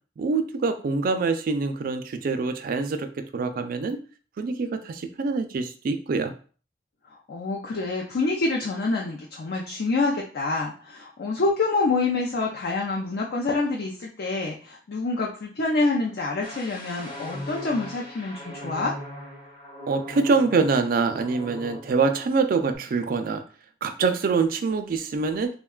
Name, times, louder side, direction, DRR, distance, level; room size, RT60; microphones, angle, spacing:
voice 1, 0.2-4.0 4.4-6.3 19.9-23.4 23.8-25.5, right 4 dB, 55° right, 8 dB, 0.3 m, -25 dB
voice 2, 7.3-18.9, left 3 dB, 60° left, -2 dB, 0.5 m, -27 dB
sound 1, 16.4-22.1 22.4-22.8, left 1 dB, 25° left, 0.7 m, -40 dB
3.5 x 2.2 x 2.3 m, 0.40 s
head